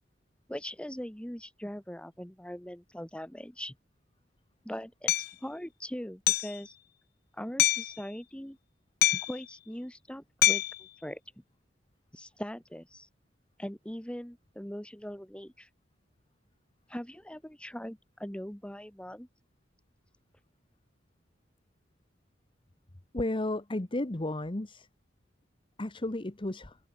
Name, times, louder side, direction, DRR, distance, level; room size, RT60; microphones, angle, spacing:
voice 1, 0.5-3.7 4.6-6.7 7.3-8.6 9.1-11.2 12.1-13.1 13.6-15.7 16.9-19.3, equal, 5° left, 1.5 m, -41 dB
Hammer, 5.1-5.3 6.3-6.6 7.6-7.9 9.0-9.4 10.4-10.8, left 15 dB, 50° left, 0.4 m, -25 dB
voice 2, 23.1-24.9 25.8-26.8, left 1 dB, 25° left, 1.1 m, -33 dB
open air
head